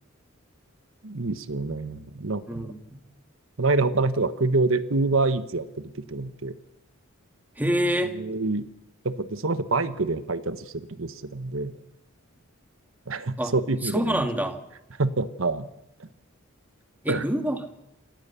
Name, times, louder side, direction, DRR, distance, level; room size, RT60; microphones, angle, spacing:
voice 1, 1.0-2.7 3.6-6.5 8.2-8.7 9.0-11.7 13.1-14.2 15.0-15.7 16.0-16.1 17.1-17.2, right 3 dB, 70° right, 13 dB, 1.2 m, -26 dB
voice 2, 2.5-3.0 7.6-8.2 13.4-13.5 13.8-14.7 17.0-17.6, right 1 dB, 10° right, 6 dB, 1.8 m, -26 dB
27.5 x 15.5 x 7.0 m, 0.91 s
head